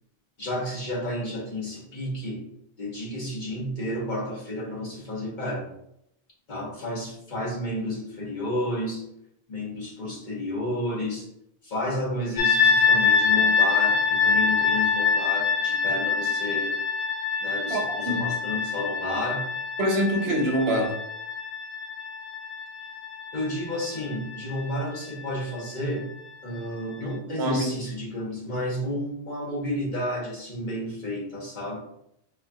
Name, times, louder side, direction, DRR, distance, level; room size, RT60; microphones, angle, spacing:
voice 1, 0.4-2.4 2.8-5.7 6.5-9.1 9.5-11.3 11.6-16.8 17.4-19.5 20.8-20.9 23.3-26.1 26.4-31.8, left 1 dB, 50° left, -5 dB, 1.2 m, -31 dB
sound 1, 12.4-25.2, left 5 dB, 90° left, 0.9 m, -25 dB
voice 2, 17.7-18.3 19.8-20.9 27.4-27.7, right 1 dB, 85° right, 2 dB, 1.0 m, -25 dB
4.3 x 2.3 x 2.7 m, 0.76 s
omnidirectional pair, 1.1 m